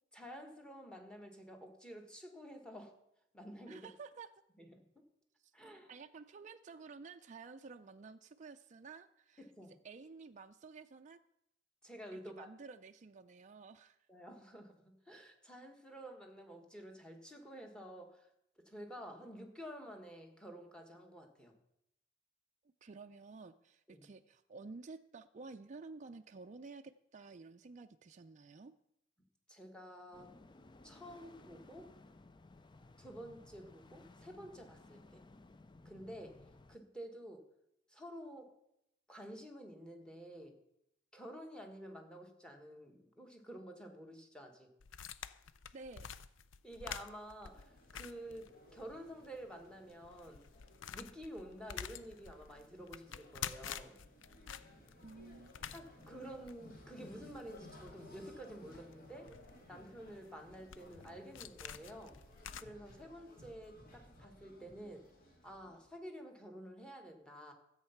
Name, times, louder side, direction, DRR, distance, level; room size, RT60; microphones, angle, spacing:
voice 1, 0.1-2.9 3.3-3.9 4.6-4.8 5.5-5.9 9.4-9.8 11.8-12.5 14.1-18.3 18.6-21.5 23.9-24.1 29.5-30.3 30.8-31.9 33.0-35.2 35.8-37.5 37.9-38.5 39.1-40.6 41.1-44.7 46.6-50.4 50.9-54.0 55.7-59.3 59.7-62.2 62.6-65.1 65.4-67.5, equal, 5° left, 4 dB, 1.6 m, -50 dB
voice 2, 3.7-4.3 5.9-9.4 9.8-11.2 12.1-14.0 22.8-28.7 45.7-46.1 55.0-55.5, right 4 dB, 40° right, 6 dB, 0.4 m, -52 dB
sound 1, 30.1-36.8, left 2 dB, 25° left, 0.5 m, -59 dB
sound 2, 44.8-49.0 49.2-49.3 49.8-62.6, left 8 dB, 90° left, 0.5 m, -49 dB
sound 3, 47.5-66.0, left 1 dB, 50° left, 2.3 m, -59 dB
13.5 x 8.1 x 5.8 m, 0.81 s
head